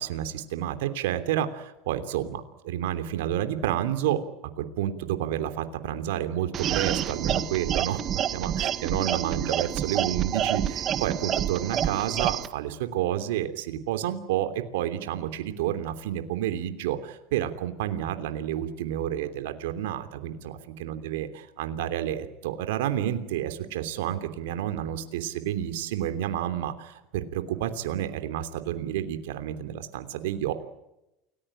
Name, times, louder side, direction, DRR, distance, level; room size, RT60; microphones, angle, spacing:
voice 1, 0.0-4.2 4.6-30.5, right 11 dB, 80° right, 9 dB, 3.1 m, -30 dB
sound 1, 6.5-12.5, right 10 dB, 40° right, 1.7 m, -28 dB
29.0 x 19.5 x 9.0 m, 0.90 s
supercardioid pair, 110°, 0 cm